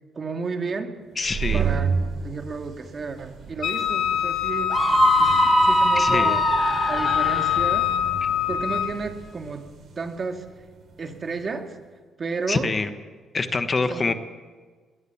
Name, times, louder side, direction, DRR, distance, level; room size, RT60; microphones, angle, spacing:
voice 1, 0.2-1.0 1.5-4.8 5.1-6.4 6.9-7.9 8.5-9.7 10.0-10.5 11.0-11.8 12.2-12.7 13.9-14.1, right 4 dB, 40° right, 5 dB, 2.2 m, -32 dB
sound 1, 1.1-11.6, right 6 dB, 60° right, 4.2 m, -33 dB
voice 2, 1.2-1.7 5.9-6.4 8.2-8.3 12.5-12.9 13.3-14.1, left 3 dB, 30° left, 9 dB, 1.3 m, -25 dB
Wind instrument woodwind instrument, 3.6-9.0, left 9 dB, 70° left, 1.5 m, -23 dB
Screaming, 4.7-7.7, right 2 dB, 20° right, 1.3 m, -22 dB
21.0 x 17.5 x 7.2 m, 1.5 s
cardioid pair, 90°, 0 cm